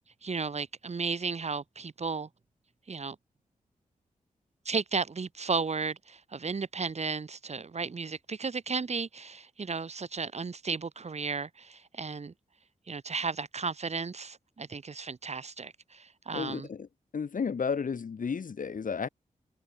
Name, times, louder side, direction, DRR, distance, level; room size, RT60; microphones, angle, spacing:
voice 1, 0.2-2.3 2.9-3.1 4.6-12.3 12.9-16.7, right 4 dB, 50° right, 1.7 m, -34 dB
voice 2, 16.3-16.9 17.1-19.1, left 6 dB, 70° left, 5.7 m, -32 dB
cardioid pair, 60°, 15 cm